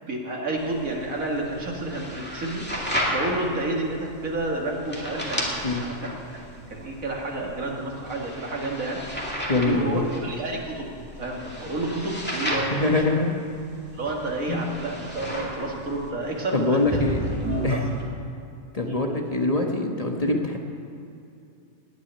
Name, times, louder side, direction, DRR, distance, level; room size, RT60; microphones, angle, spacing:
voice 1, 0.0-6.4 6.7-9.0 9.6-10.9 11.2-13.0 14.0-16.8 17.7-17.8 18.8-19.0, right 2 dB, 80° right, -1 dB, 2.6 m, -30 dB
sound 1, 0.6-18.0, equal, 5° left, 2.3 m, -33 dB
voice 2, 9.5-10.1 12.7-13.4 14.5-14.6 16.5-17.2 17.6-17.9 18.7-20.6, left 2 dB, 30° left, 1 dB, 1.2 m, -24 dB
18.5 x 6.3 x 9.9 m, 2.6 s
omnidirectional pair, 1.4 m